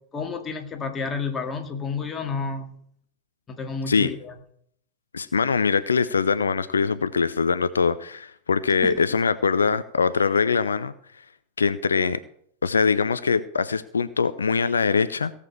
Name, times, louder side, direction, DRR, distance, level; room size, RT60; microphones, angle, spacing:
voice 1, 0.1-2.7 3.5-4.4 8.8-9.0, left 4 dB, 20° left, 4 dB, 2.3 m, -30 dB
voice 2, 5.1-11.2 11.6-12.2 12.6-15.3, left 5 dB, 75° left, 14 dB, 0.5 m, -23 dB
17.0 x 6.7 x 7.0 m, 0.66 s
figure-of-eight pair, 90°, 0 cm